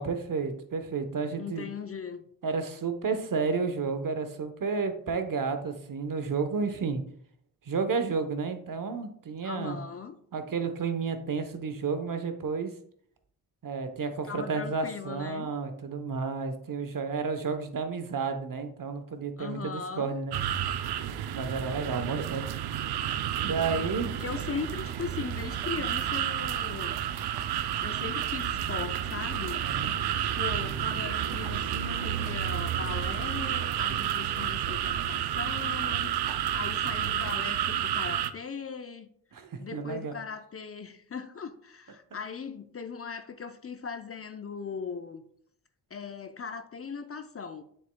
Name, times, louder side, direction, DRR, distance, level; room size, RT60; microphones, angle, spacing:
voice 1, 0.0-1.7 2.4-7.0 7.7-9.8 10.3-12.7 13.6-20.3 21.3-22.5 23.4-24.1 29.6-29.9 39.3-40.1, right 5 dB, 50° right, 1.0 m, -31 dB
voice 2, 1.4-2.2 9.4-10.2 14.2-15.5 19.4-20.1 23.7-27.0 27.8-29.7 30.3-39.1 39.6-45.2 45.9-47.6, left 6 dB, 35° left, 0.6 m, -39 dB
sound 1, 20.3-38.3, right 10 dB, 65° right, 0.6 m, -30 dB
7.4 x 6.5 x 2.2 m
supercardioid pair, 55°, 42 cm